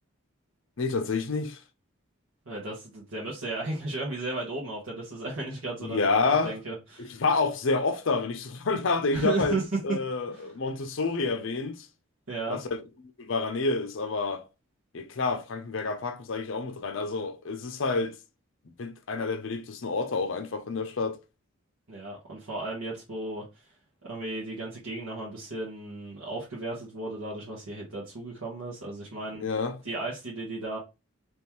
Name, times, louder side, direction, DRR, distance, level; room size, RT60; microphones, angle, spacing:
voice 1, 0.8-1.6 5.8-6.5 7.0-9.6 9.8-11.9 12.5-12.8 13.2-14.5 14.9-18.1 18.8-21.2 29.4-29.8, left 3 dB, 65° left, 0.6 m, -28 dB
voice 2, 2.4-7.2 9.1-9.6 10.3-10.5 12.3-12.6 21.9-23.7 24.0-29.4 29.8-30.8, right 2 dB, 80° right, 1.2 m, -34 dB
3.5 x 3.0 x 3.0 m
head